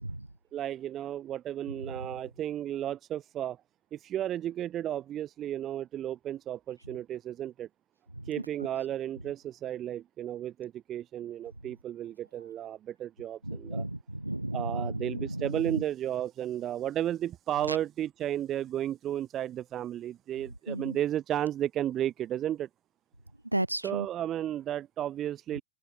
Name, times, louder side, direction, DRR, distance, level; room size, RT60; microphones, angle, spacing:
voice 1, 0.5-3.6 3.9-7.7 8.3-13.8 14.5-22.7 23.8-25.6, right 11 dB, 30° right, 0.4 m, -33 dB
voice 2, 1.8-2.1 8.2-8.3 13.4-15.8 17.7-17.8 20.7-21.0 23.5-24.1, right 1 dB, 85° right, 0.6 m, -34 dB
open air
figure-of-eight pair, 90°, 0 cm